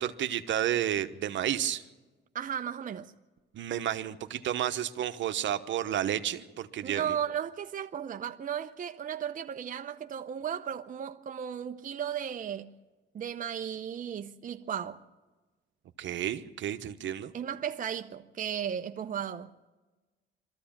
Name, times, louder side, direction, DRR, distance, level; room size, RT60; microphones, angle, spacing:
voice 1, 0.0-1.8 3.5-7.1 16.0-17.3, right 11 dB, 70° right, 1.1 m, -31 dB
voice 2, 2.3-3.1 6.8-12.7 13.1-15.0 17.3-19.5, right 9 dB, 40° right, 0.7 m, -35 dB
21.5 x 14.0 x 8.8 m
cardioid pair, 90°, 20 cm